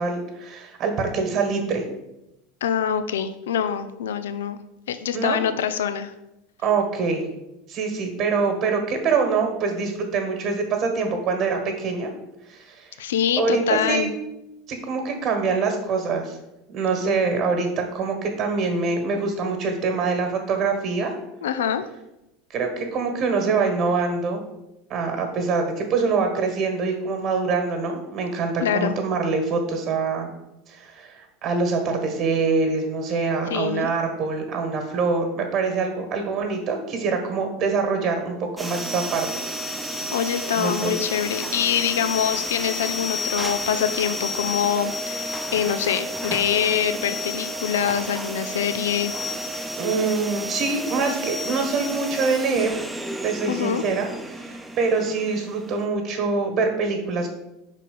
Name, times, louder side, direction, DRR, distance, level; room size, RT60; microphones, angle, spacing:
voice 1, 0.0-1.8 5.1-5.4 6.6-7.3 7.7-12.1 12.5-13.0 13.4-14.1 14.7-16.4 16.7-21.1 22.5-24.4 24.9-30.3 30.7-39.3 40.5-41.0 49.8-52.7 53.2-57.3, right 4 dB, 50° right, 4 dB, 1.5 m, -24 dB
voice 2, 2.6-4.6 4.9-6.1 13.0-14.1 21.4-21.8 28.6-29.0 33.5-33.9 40.1-49.1 53.5-53.8, left 8 dB, 85° left, 10 dB, 0.4 m, -25 dB
sound 1, 38.6-55.8, left 1 dB, 5° right, 0.7 m, -31 dB
5.0 x 4.2 x 5.4 m, 0.91 s
hypercardioid pair, 90°, 0 cm